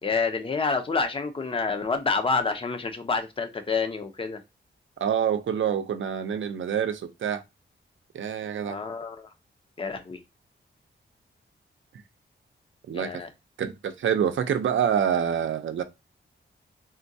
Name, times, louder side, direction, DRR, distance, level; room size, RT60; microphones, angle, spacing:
voice 1, 0.0-4.4 8.7-9.3 9.8-10.2 12.9-13.3, left 4 dB, 25° left, 0.6 m, -28 dB
voice 2, 5.0-7.4 8.1-8.8 12.9-13.1 13.6-15.8, right 8 dB, 75° right, 0.5 m, -26 dB
3.7 x 2.2 x 2.6 m
wide cardioid pair, 115°, 20 cm